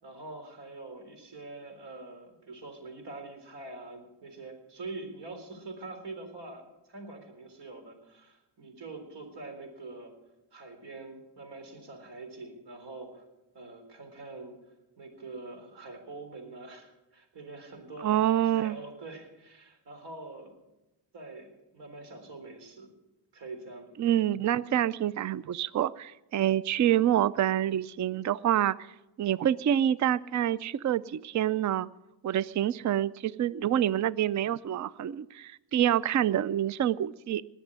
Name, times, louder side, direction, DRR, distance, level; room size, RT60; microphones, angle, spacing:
voice 1, 0.0-10.1 10.5-13.2 13.5-14.6 15.0-18.2 18.5-20.5 21.1-22.9 23.3-23.9, right 3 dB, 75° right, 6 dB, 3.9 m, -44 dB
voice 2, 18.0-18.8 24.0-28.8 29.2-31.9 32.2-37.4, right 11 dB, 45° right, 19 dB, 0.5 m, -27 dB
20.5 x 7.2 x 9.8 m, 1.0 s
cardioid pair, 110°, 42 cm